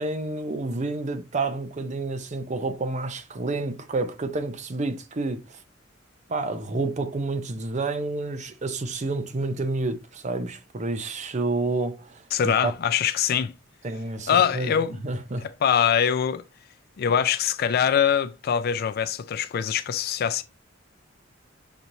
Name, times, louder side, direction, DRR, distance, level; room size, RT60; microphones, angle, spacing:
voice 1, 0.0-5.6 6.3-12.7 13.8-14.7 15.0-15.5, right 3 dB, 35° right, 0.6 m, -29 dB
voice 2, 12.3-13.5 14.3-15.0 15.6-16.4 17.0-20.4, left 8 dB, 50° left, 0.3 m, -23 dB
6.7 x 3.0 x 2.6 m
head